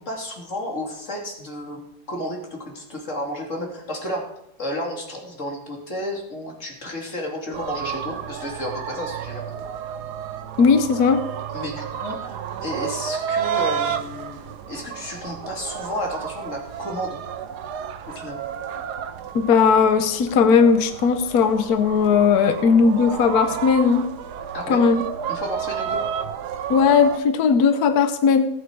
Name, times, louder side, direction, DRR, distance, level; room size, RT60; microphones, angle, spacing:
voice 1, 0.0-1.8 2.1-4.3 4.6-9.5 11.5-17.2 18.1-18.4 24.5-24.8 25.3-26.0, left 1 dB, 45° left, 0 dB, 3.1 m, -32 dB
sound 1, 7.5-27.2, right 8 dB, 70° right, 1.3 m, -31 dB
voice 2, 10.6-11.2 19.3-24.0 24.7-25.0 26.7-28.5, left 5 dB, 65° left, 9 dB, 1.4 m, -17 dB
19.0 x 8.2 x 4.7 m, 0.81 s
omnidirectional pair, 1.9 m